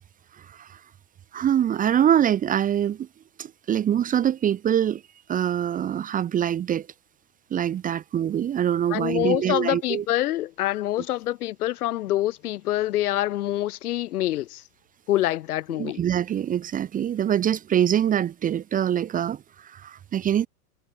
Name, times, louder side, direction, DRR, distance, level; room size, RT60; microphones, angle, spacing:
voice 1, 0.4-0.8 1.3-3.1 3.4-5.0 5.3-6.9 7.5-10.0 15.7-20.5, right 10 dB, 20° right, 1.0 m, -24 dB
voice 2, 8.9-14.6 15.1-16.0, left 14 dB, 75° left, 2.8 m, -26 dB
supercardioid pair, 145°, 45 cm